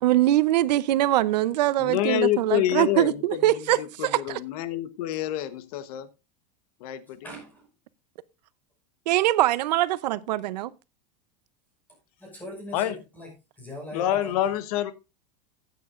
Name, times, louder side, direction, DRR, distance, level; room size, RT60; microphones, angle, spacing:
voice 1, 0.0-4.4 9.1-10.7, right 14 dB, 85° right, 0.7 m, -23 dB
voice 2, 1.8-6.1 6.8-7.2 12.7-13.0 13.9-14.9, left 12 dB, 65° left, 1.1 m, -27 dB
voice 3, 7.2-7.7 12.2-13.3 13.6-14.3, left 1 dB, 10° left, 5.6 m, -40 dB
14.5 x 9.2 x 2.5 m
supercardioid pair, 165°, 21 cm